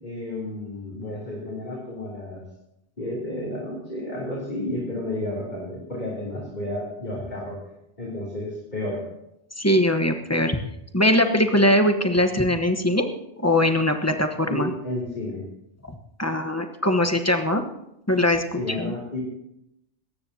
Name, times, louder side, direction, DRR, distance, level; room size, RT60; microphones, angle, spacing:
voice 1, 0.0-2.4 3.0-7.6 8.0-9.0 14.5-15.4 18.6-19.2, left 1 dB, 40° left, -5 dB, 3.3 m, -31 dB
voice 2, 9.6-10.6 10.9-13.1 13.4-14.7 16.2-17.6 18.1-18.9, left 1 dB, 15° left, 5 dB, 1.0 m, -21 dB
21.0 x 18.0 x 2.8 m, 0.84 s
omnidirectional pair, 1.2 m